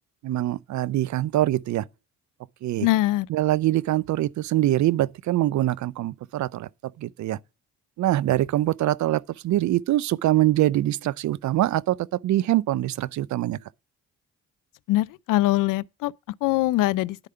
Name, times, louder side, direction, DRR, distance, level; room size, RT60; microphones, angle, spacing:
voice 1, 0.2-1.9 2.6-2.9 3.3-6.7 7.0-7.4 8.0-13.6, right 14 dB, 55° right, 0.5 m, -24 dB
voice 2, 2.8-3.3 14.9-16.1 16.4-17.2, left 16 dB, 65° left, 0.5 m, -22 dB
10.5 x 4.8 x 6.7 m
hypercardioid pair, 50°, 34 cm